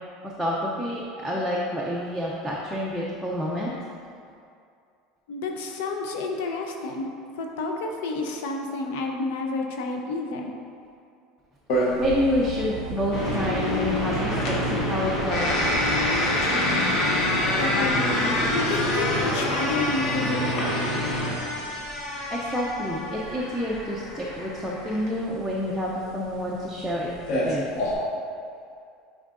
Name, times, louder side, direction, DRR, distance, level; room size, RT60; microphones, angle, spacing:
voice 1, 0.2-3.7 12.0-15.6 22.3-27.1 27.4-27.7, left 1 dB, ahead, -5 dB, 0.4 m, -28 dB
voice 2, 5.3-7.1 7.4-10.5 17.0-20.7, left 3 dB, 75° left, 2 dB, 0.7 m, -30 dB
sound 1, 11.7-27.9, left 1 dB, 45° left, 0.9 m, -28 dB
sound 2, 12.0-16.4, right 5 dB, 75° right, 0.5 m, -35 dB
sound 3, 13.1-21.3, left 1 dB, 30° left, 1.2 m, -28 dB
8.7 x 4.5 x 2.5 m, 2.4 s
cardioid pair, 175°, 0 cm